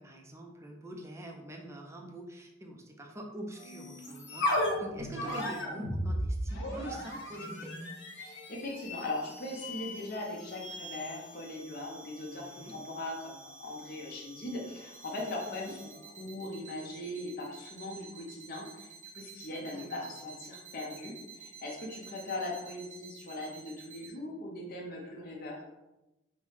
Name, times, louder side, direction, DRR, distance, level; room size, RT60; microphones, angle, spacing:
voice 1, 0.0-7.8 12.3-12.8 15.5-15.8 19.7-20.1, equal, 15° right, 1 dB, 0.4 m, -45 dB
sound 1, 3.5-16.0, left 1 dB, 75° left, 1.2 m, -38 dB
voice 2, 8.2-15.9 16.2-25.6, left 2 dB, 50° left, -2 dB, 0.7 m, -40 dB
sound 2, 14.9-24.1, right 7 dB, 45° right, 0.8 m, -50 dB
5.2 x 2.1 x 3.2 m, 0.98 s
head